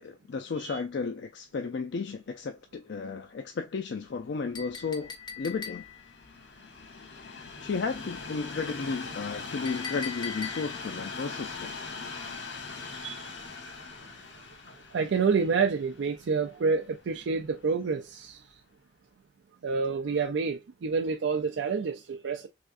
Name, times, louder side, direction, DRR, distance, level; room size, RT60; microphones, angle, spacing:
voice 1, 0.0-5.8 7.6-11.9, left 4 dB, 65° left, 0.4 m, -34 dB
Train, 4.4-17.6 18.3-18.4, left 4 dB, 90° left, 0.9 m, -41 dB
Chink clink, 4.5-6.1 9.7-10.9, left 6 dB, 25° left, 0.6 m, -40 dB
voice 2, 12.9-13.3 14.4-14.5 14.9-18.4 19.6-22.5, right 5 dB, 85° right, 0.4 m, -28 dB
3.5 x 3.4 x 2.4 m
head